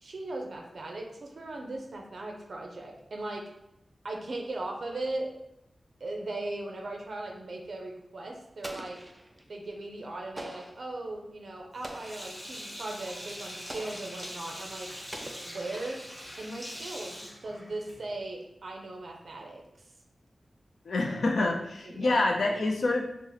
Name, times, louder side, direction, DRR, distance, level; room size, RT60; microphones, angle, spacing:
voice 1, 0.0-3.4 4.0-5.3 6.0-9.0 9.5-14.9 15.4-16.0 16.4-19.6 21.8-22.2, right 2 dB, 65° right, 1 dB, 0.6 m, -38 dB
Explosion, 8.6-9.5 10.4-10.9 11.8-12.4 13.7-14.2 15.1-16.0, right 1 dB, 15° right, 0.4 m, -44 dB
Sink (filling or washing), 11.8-18.2, equal, 20° left, 0.9 m, -43 dB
voice 2, 20.8-23.1, left 2 dB, 90° left, 1 dB, 0.5 m, -27 dB
2.9 x 2.1 x 3.8 m, 0.82 s
wide cardioid pair, 105°, 0 cm